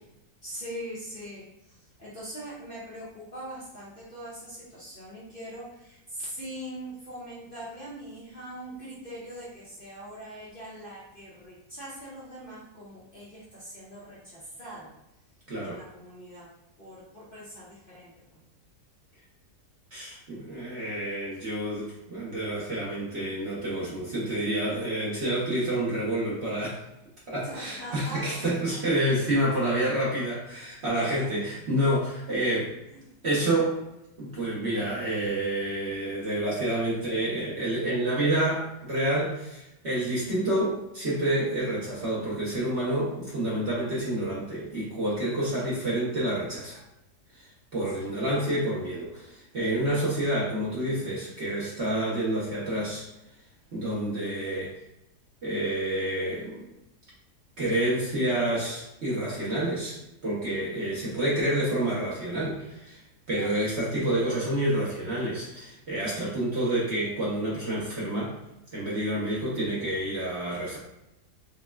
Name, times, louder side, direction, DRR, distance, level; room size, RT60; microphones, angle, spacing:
voice 1, 0.4-14.9 15.6-16.5 16.8-18.4 21.3-21.4 27.4-28.5 30.9-31.7 32.9-33.1 45.5-45.7 47.9-48.1 63.3-63.6, right 1 dB, 40° left, -8 dB, 0.9 m, -42 dB
voice 2, 15.5-15.8 19.9-26.8 27.3-32.7 33.2-33.7 34.2-46.8 47.7-53.0 53.7-54.7 55.4-56.7 57.6-60.0 60.2-63.0 63.3-68.3 68.7-70.8, right 1 dB, 50° right, -6 dB, 1.0 m, -28 dB
5.2 x 2.1 x 2.3 m, 0.89 s
omnidirectional pair, 1.8 m